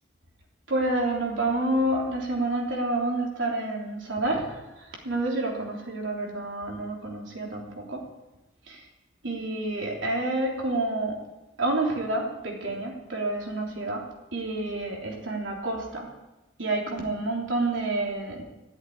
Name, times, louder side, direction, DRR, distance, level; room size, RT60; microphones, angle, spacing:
voice 1, 0.7-8.1 8.7-8.8 9.2-11.2 11.6-14.1 14.3-16.1 16.6-18.4, right 2 dB, 80° right, -1 dB, 3.5 m, -29 dB
14.5 x 8.1 x 9.5 m, 1.0 s
head